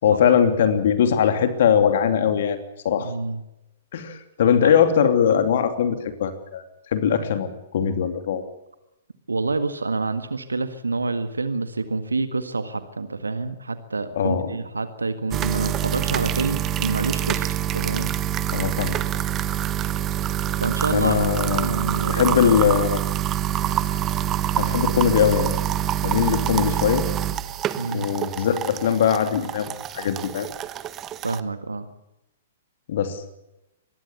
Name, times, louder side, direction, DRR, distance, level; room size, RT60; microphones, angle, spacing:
voice 1, 0.0-2.6 2.8-3.1 3.9-6.6 6.9-8.4 14.1-14.6 18.5-18.9 20.9-21.8 22.1-23.0 24.6-25.6 26.0-27.1 27.9-29.7 29.9-30.5 32.9-33.2, left 8 dB, 55° left, 8 dB, 2.9 m, -21 dB
voice 2, 2.9-3.4 9.3-18.1 20.6-21.1 21.5-22.5 27.8-28.1 31.2-31.9, right 3 dB, 75° right, 10 dB, 1.8 m, -27 dB
sound 1, 15.3-31.4, right 11 dB, 25° right, 1.2 m, -26 dB
25.0 x 21.0 x 7.1 m, 0.90 s
figure-of-eight pair, 110°, 0 cm